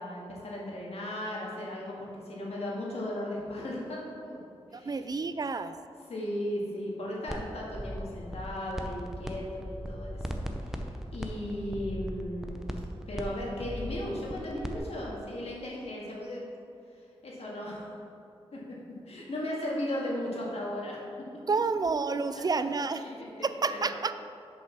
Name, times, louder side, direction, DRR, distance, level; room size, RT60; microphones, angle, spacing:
voice 1, 0.0-4.4 4.7-5.1 6.1-10.4 10.6-10.8 11.1-12.7 13.1-16.5 17.2-18.0 18.5-18.8 19.1-21.0 22.3-22.4 22.9-23.3 23.7-23.9, left 1 dB, 70° left, -4 dB, 1.9 m, -36 dB
voice 2, 4.7-5.7 21.5-23.0 23.4-24.1, right 4 dB, 35° right, 11 dB, 0.4 m, -29 dB
sound 1, 7.3-7.4 7.7-9.3 9.6-14.8, equal, 5° right, 0.6 m, -37 dB
6.9 x 5.5 x 5.8 m, 2.5 s
wide cardioid pair, 90°, 11 cm